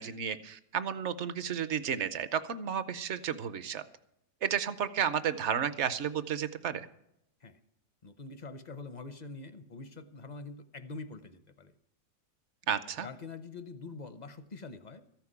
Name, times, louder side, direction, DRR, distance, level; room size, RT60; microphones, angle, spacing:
voice 1, 0.0-3.8 4.4-6.9 12.7-13.1, right 8 dB, 55° right, 12 dB, 0.8 m, -32 dB
voice 2, 8.0-11.7 13.0-15.0, left 3 dB, 45° left, 12 dB, 0.6 m, -45 dB
14.0 x 5.9 x 9.6 m, 0.79 s
omnidirectional pair, 1.7 m